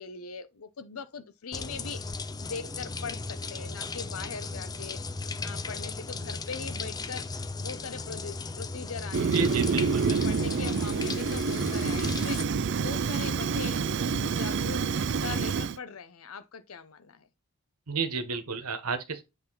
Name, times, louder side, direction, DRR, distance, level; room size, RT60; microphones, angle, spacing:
voice 1, 0.0-2.0 2.4-5.0 5.4-7.3 7.6-14.8 15.2-17.3, left 5 dB, 75° left, 0.7 m, -41 dB
sound 1, 1.5-12.4, left 3 dB, 15° left, 0.4 m, -36 dB
Fire, 9.1-15.8, right 5 dB, 55° right, 0.4 m, -28 dB
voice 2, 9.3-10.6 17.9-19.2, right 4 dB, 90° right, 1.2 m, -32 dB
8.1 x 3.5 x 3.9 m
head